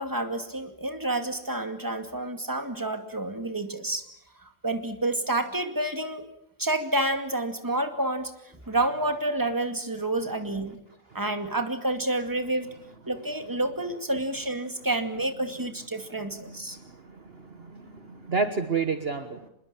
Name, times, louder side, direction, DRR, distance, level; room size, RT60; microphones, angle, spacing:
voice 1, 0.0-4.1 4.4-6.3 6.6-8.3 8.7-10.8 11.1-12.7 13.1-16.8, right 2 dB, 15° right, 7 dB, 2.4 m, -29 dB
voice 2, 17.3-19.4, right 4 dB, 45° right, 9 dB, 1.6 m, -29 dB
25.5 x 21.5 x 8.8 m, 0.74 s
omnidirectional pair, 1.5 m